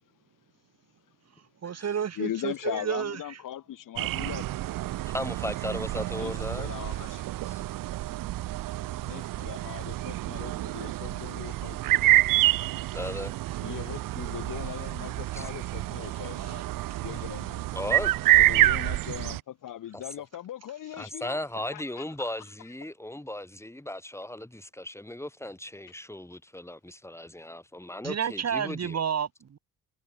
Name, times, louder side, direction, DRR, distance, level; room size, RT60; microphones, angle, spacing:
voice 1, 1.6-3.2 16.4-16.6 28.0-29.6, right 8 dB, 50° right, 1.9 m, -31 dB
voice 2, 2.2-4.5 6.2-7.2 8.8-12.0 13.6-16.6 17.0-17.7 18.4-22.3, left 11 dB, 70° left, 3.1 m, -39 dB
sound 1, 4.0-19.4, right 16 dB, 80° right, 1.1 m, -28 dB
voice 3, 5.1-6.7 7.4-7.6 12.9-13.3 15.3-15.4 17.7-18.2 19.9-20.0 21.0-29.0, left 1 dB, 10° left, 4.9 m, -36 dB
supercardioid pair, 70°, 33 cm